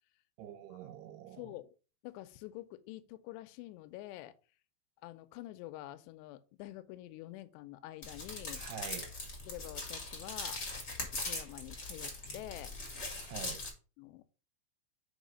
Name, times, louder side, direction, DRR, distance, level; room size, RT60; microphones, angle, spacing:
voice 1, 0.4-1.5 8.5-9.1 13.2-13.6, right 9 dB, 75° right, 2.7 m, -46 dB
voice 2, 1.4-1.8 2.0-4.4 5.0-8.6 9.5-10.6 11.0-12.7 14.0-14.2, left 16 dB, 85° left, 2.6 m, -47 dB
sound 1, 8.0-13.7, left 3 dB, 65° left, 0.8 m, -41 dB
6.3 x 4.8 x 5.1 m
omnidirectional pair, 5.4 m